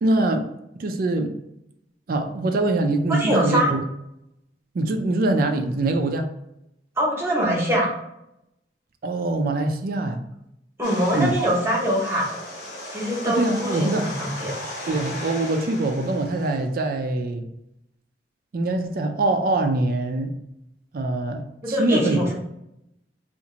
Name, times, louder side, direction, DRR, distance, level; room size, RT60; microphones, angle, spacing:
voice 1, 0.0-0.5 0.8-1.4 2.1-3.8 4.7-6.3 9.0-10.2 11.1-11.3 13.3-14.1 14.9-17.5 18.5-20.3 20.9-22.2, right 2 dB, 50° right, 6 dB, 0.4 m, -23 dB
voice 2, 3.1-3.8 7.0-7.9 10.8-12.4 12.9-14.5 21.6-22.3, equal, 15° right, -3 dB, 0.9 m, -23 dB
sound 1, 10.8-16.7, left 1 dB, 65° left, 1.0 m, -36 dB
2.8 x 2.5 x 3.8 m, 0.83 s
head